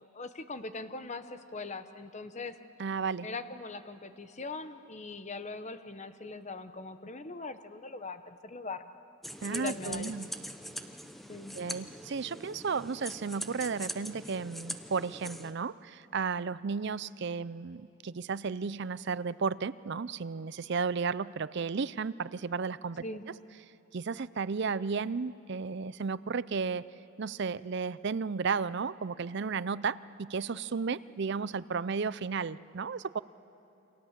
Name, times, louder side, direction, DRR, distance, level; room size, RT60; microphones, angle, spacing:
voice 1, 0.0-2.6 3.2-8.9 9.5-10.1 11.3-11.6 23.0-23.2, left 3 dB, 35° left, 10 dB, 1.0 m, -41 dB
voice 2, 2.8-3.3 9.4-10.3 11.5-23.0 23.9-26.9 27.2-33.2, right 5 dB, 55° right, 17 dB, 0.5 m, -33 dB
sound 1, 9.2-15.5, equal, ahead, 0.8 m, -42 dB
28.5 x 25.0 x 7.4 m, 2.9 s
head